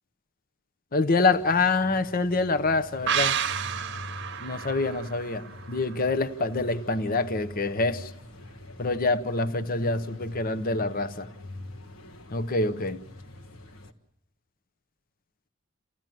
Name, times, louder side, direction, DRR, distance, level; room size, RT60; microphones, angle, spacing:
voice 1, 0.9-3.4 4.4-8.1 8.8-11.3 12.3-13.0, left 3 dB, 45° left, 0.8 m, -26 dB
sound 1, 1.3-13.9, left 2 dB, 80° left, 1.6 m, -45 dB
sound 2, 3.1-6.5 6.8-6.9, right 8 dB, 60° right, 0.8 m, -31 dB
29.0 x 15.5 x 9.2 m
head